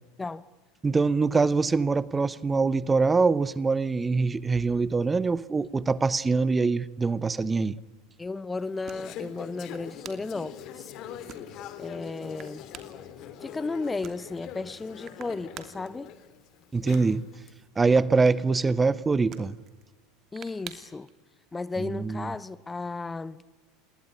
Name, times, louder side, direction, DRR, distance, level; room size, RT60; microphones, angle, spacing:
voice 1, 0.8-7.8 16.7-17.3 17.8-19.6 21.8-22.3, right 4 dB, 15° right, 0.9 m, -24 dB
voice 2, 8.2-10.9 11.8-12.7 13.4-16.1 20.3-21.1 21.5-23.4, left 3 dB, 15° left, 0.9 m, -34 dB
Conversation / Chatter, 8.6-17.5, left 9 dB, 45° left, 3.3 m, -43 dB
sound 1, 9.6-21.1, right 9 dB, 40° right, 2.9 m, -52 dB
28.5 x 21.5 x 9.9 m
figure-of-eight pair, 80°, 0 cm